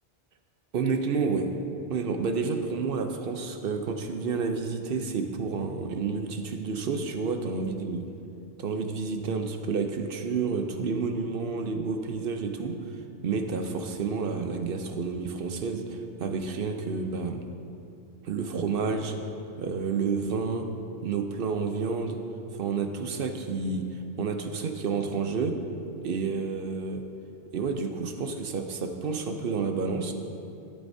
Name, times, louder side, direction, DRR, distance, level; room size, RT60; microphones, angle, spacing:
voice 1, 0.7-1.5 1.9-8.1 8.6-12.8 13.2-17.4 18.2-19.1 19.6-20.7 21.0-22.2 22.5-25.6 26.0-27.0 27.5-30.1, right 5 dB, 60° right, 6 dB, 0.9 m, -30 dB
12.5 x 10.5 x 2.7 m, 2.6 s
omnidirectional pair, 1.1 m